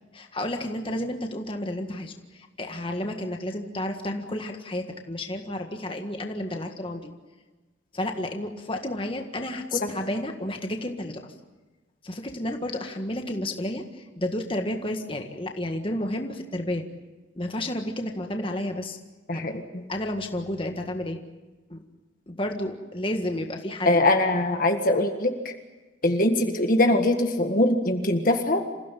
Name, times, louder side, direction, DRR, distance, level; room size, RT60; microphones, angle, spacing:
voice 1, 0.1-7.1 7.9-11.3 12.0-16.8 17.3-19.0 19.3-19.5 19.9-21.2 21.7-21.8 22.3-24.0 24.3-24.4, left 1 dB, 25° left, 4 dB, 1.7 m, -31 dB
voice 2, 19.3-19.6 23.8-25.3 26.0-28.6, left 1 dB, 45° left, 5 dB, 1.7 m, -22 dB
27.0 x 16.0 x 9.3 m, 1.2 s
head